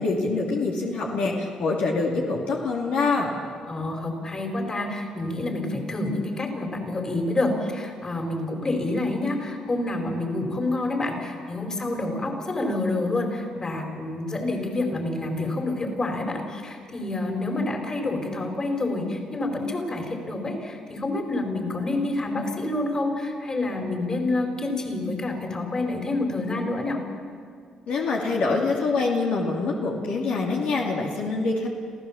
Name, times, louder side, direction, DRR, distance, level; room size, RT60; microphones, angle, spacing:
voice 1, 0.0-3.3 27.9-31.7, left 3 dB, 75° left, -2 dB, 2.8 m, -25 dB
voice 2, 3.7-27.0, left 2 dB, 30° left, 3 dB, 4.3 m, -28 dB
27.0 x 15.5 x 7.3 m, 2.1 s
cardioid pair, 80°, 2 cm